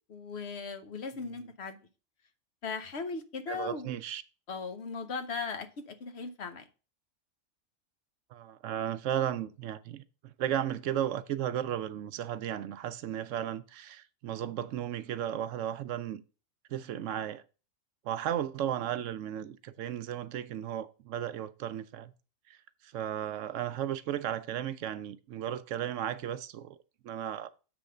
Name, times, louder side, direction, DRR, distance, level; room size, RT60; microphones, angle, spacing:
voice 1, 0.1-1.8 2.6-3.9 4.5-6.7, left 4 dB, 60° left, 1.0 m, -38 dB
voice 2, 3.5-4.2 8.3-16.2 16.7-17.4 18.0-22.1 22.5-22.6 22.8-26.8 27.0-27.5, right 10 dB, 75° right, 0.9 m, -35 dB
7.7 x 3.5 x 6.5 m
omnidirectional pair, 1.4 m